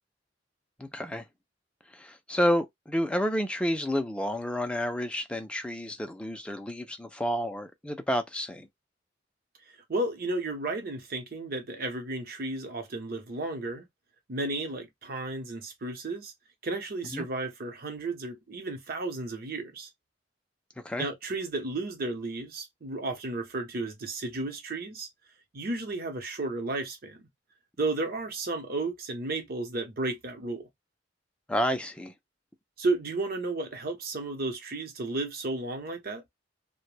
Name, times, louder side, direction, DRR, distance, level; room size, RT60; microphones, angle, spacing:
voice 1, 0.8-1.2 1.9-8.7 17.1-17.3 20.8-21.1 31.5-32.1, equal, 5° left, 0.4 m, -30 dB
voice 2, 9.7-13.8 14.3-16.3 16.6-19.9 21.0-25.1 25.5-27.3 27.8-30.7 32.8-36.2, right 2 dB, 55° right, 0.8 m, -33 dB
2.1 x 2.1 x 3.1 m
head